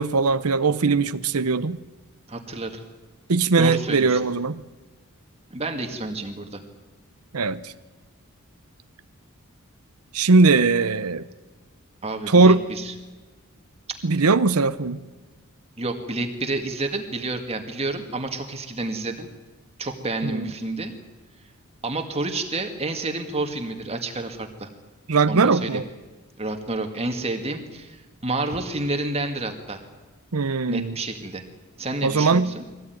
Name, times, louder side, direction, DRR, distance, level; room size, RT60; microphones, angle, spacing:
voice 1, 0.0-1.8 3.3-4.6 7.3-7.7 10.1-11.2 12.3-12.6 14.0-15.0 20.2-20.5 25.1-25.8 30.3-30.9 32.0-32.5, right 4 dB, 85° right, 12 dB, 0.8 m, -20 dB
voice 2, 2.3-2.8 3.6-4.2 5.5-6.6 12.0-12.9 13.9-14.0 15.8-19.3 19.8-20.9 21.8-24.7 25.3-25.8 26.4-29.8 30.7-31.4 31.8-32.6, right 2 dB, 30° right, 5 dB, 1.9 m, -29 dB
23.0 x 17.5 x 9.3 m, 1.3 s
head